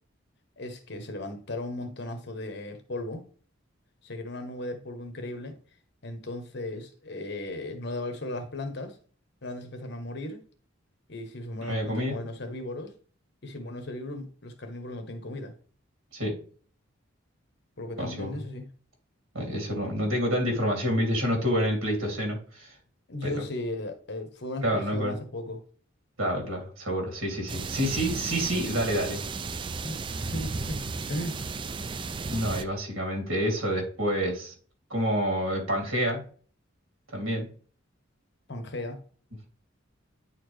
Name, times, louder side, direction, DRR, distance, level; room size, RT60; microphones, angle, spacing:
voice 1, 0.6-3.2 4.0-5.6 6.0-9.0 9.4-10.4 11.1-12.9 13.4-15.5 17.8-18.6 23.1-25.6 29.8-30.8 31.1-31.4 38.5-39.0, left 1 dB, 55° left, 1.1 m, -36 dB
voice 2, 11.6-12.2 16.1-16.3 18.0-18.3 19.3-22.7 23.2-23.3 24.6-25.1 26.2-29.2 32.3-34.5 34.9-36.2 37.1-37.5, equal, 90° right, 2.8 m, -28 dB
sound 1, 27.5-32.6, right 4 dB, 25° right, 0.3 m, -34 dB
9.4 x 4.3 x 3.2 m
head